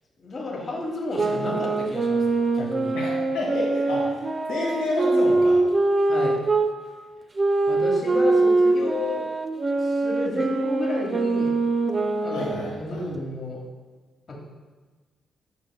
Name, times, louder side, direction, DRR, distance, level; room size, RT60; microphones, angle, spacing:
voice 1, 0.2-2.9 6.1-6.4 7.7-9.2 9.8-11.5 12.2-13.6 14.3-14.4, left 2 dB, 45° left, -3 dB, 1.6 m, -31 dB
sound 1, 1.1-6.7 7.4-12.8, right 2 dB, 35° right, 0.6 m, -23 dB
voice 2, 2.9-4.2 4.5-5.6 12.3-13.0, left 1 dB, 75° left, -4 dB, 1.8 m, -29 dB
9.0 x 6.1 x 2.3 m, 1.3 s
hypercardioid pair, 40°, 0 cm